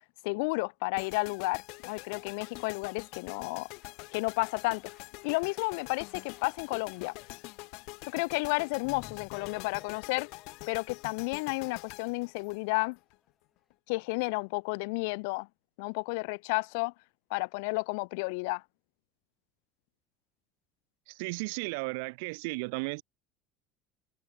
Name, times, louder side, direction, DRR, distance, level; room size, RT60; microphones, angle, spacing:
voice 1, 0.2-3.7 4.1-4.8 5.2-7.1 8.1-10.3 10.7-13.0 13.9-15.5 15.8-16.9 17.3-18.6, left 30 dB, 90° left, 0.4 m, -32 dB
sound 1, 1.0-13.1, left 28 dB, 65° left, 2.1 m, -46 dB
sound 2, 1.8-13.8, left 5 dB, 15° left, 3.2 m, -68 dB
sound 3, 8.8-11.6 12.0-12.1 12.4-12.5 12.9-13.0, left 13 dB, 40° left, 3.2 m, -52 dB
voice 2, 21.1-23.0, right 29 dB, 85° right, 0.3 m, -34 dB
cardioid pair, 165°, 0 cm